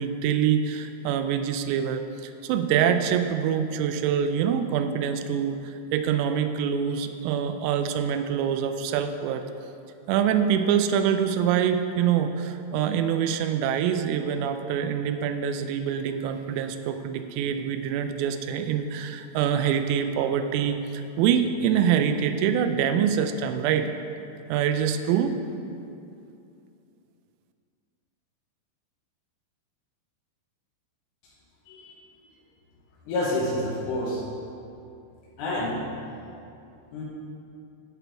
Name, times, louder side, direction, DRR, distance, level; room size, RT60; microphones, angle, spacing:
voice 1, 0.0-9.4 10.1-23.9 24.5-25.4, right 8 dB, 90° right, 7 dB, 3.3 m, -25 dB
voice 2, 31.7-32.0 33.1-34.2 35.4-35.8 36.9-37.0, left 1 dB, 75° left, -5 dB, 3.4 m, -28 dB
15.0 x 6.0 x 3.4 m, 2.6 s
omnidirectional pair, 6.0 m